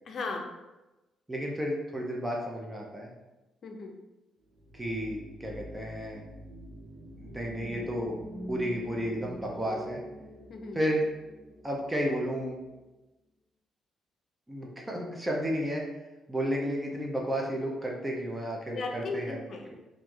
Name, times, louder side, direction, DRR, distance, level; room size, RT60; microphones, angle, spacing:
voice 1, 0.1-0.5 3.6-3.9 10.5-10.8 18.7-19.7, left 3 dB, 55° left, 3 dB, 0.5 m, -36 dB
voice 2, 1.3-3.1 4.7-6.2 7.2-8.2 8.5-10.0 10.7-11.1 11.6-12.6 14.5-15.8 16.3-19.4, equal, 15° right, -1 dB, 0.5 m, -32 dB
sound 1, 4.6-12.9, left 1 dB, 75° right, 0.5 m, -45 dB
3.1 x 2.5 x 2.3 m, 1.1 s
cardioid pair, 90°, 0 cm